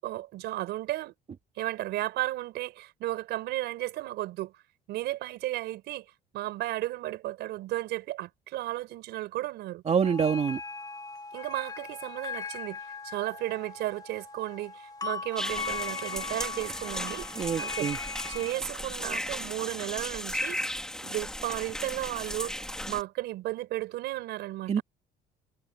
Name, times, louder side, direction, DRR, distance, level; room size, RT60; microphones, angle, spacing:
voice 1, 0.0-1.1 1.6-4.5 4.9-6.0 6.3-9.8 11.3-12.8 13.0-17.3 17.6-17.9 18.3-20.7 21.0-24.8, right 16 dB, 80° right, 6.1 m, -34 dB
voice 2, 9.9-10.6 17.3-18.0 24.7-24.8, right 7 dB, 40° right, 2.4 m, -26 dB
sound 1, 10.0-18.5, left 4 dB, 20° left, 2.1 m, -39 dB
sound 2, 15.4-23.0, left 1 dB, 5° left, 3.0 m, -36 dB
cardioid pair, 110°, 17 cm